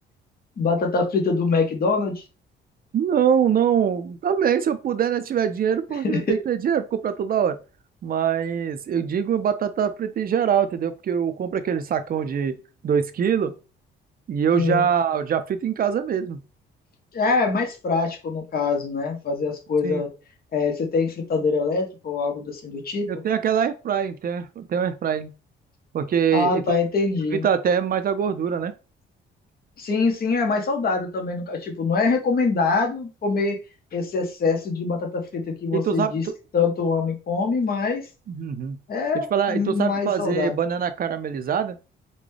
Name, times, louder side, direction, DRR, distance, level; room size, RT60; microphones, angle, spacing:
voice 1, 0.6-2.2 6.0-6.4 14.5-14.9 17.1-20.1 20.5-23.1 26.3-27.5 29.8-33.6 33.9-36.2 36.5-38.1 38.9-40.6, left 4 dB, 50° left, 1.1 m, -24 dB
voice 2, 2.9-7.6 8.0-12.5 12.8-13.5 14.3-16.4 19.8-20.0 23.1-25.3 25.9-26.6 27.3-28.7 35.7-36.3 38.3-38.8 39.3-41.8, right 8 dB, 50° right, 0.5 m, -23 dB
3.9 x 2.2 x 3.2 m
cardioid pair, 90°, 20 cm